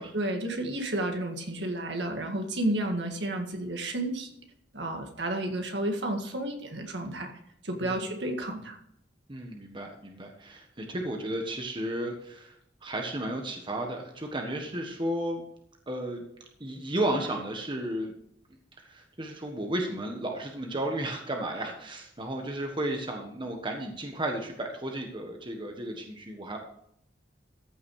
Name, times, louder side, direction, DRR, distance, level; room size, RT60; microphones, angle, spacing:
voice 1, 0.0-4.3 4.7-7.3 7.6-8.8, right 1 dB, 70° right, 3 dB, 2.0 m, -31 dB
voice 2, 9.3-12.5 12.8-15.4 15.9-16.2 16.6-18.1 18.8-26.6, right 1 dB, 25° right, 2 dB, 1.4 m, -33 dB
14.5 x 6.2 x 4.8 m, 0.72 s
head